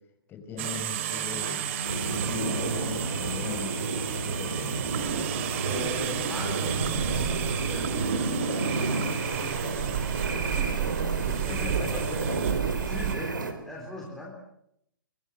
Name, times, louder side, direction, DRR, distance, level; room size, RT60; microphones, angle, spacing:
voice 1, 0.3-4.9 11.3-12.4, left 5 dB, 20° left, 7 dB, 5.3 m, -39 dB
sound 1, 0.6-13.2, right 11 dB, 35° right, 2.5 m, -33 dB
sound 2, 1.3-8.7, left 4 dB, 70° left, 2.2 m, -43 dB
sound 3, 1.8-13.5, right 3 dB, 65° right, 4.6 m, -30 dB
voice 2, 5.6-12.3 12.7-14.3, left 1 dB, 5° left, -1 dB, 3.8 m, -41 dB
26.0 x 24.0 x 7.8 m, 0.76 s
figure-of-eight pair, 130°, 11 cm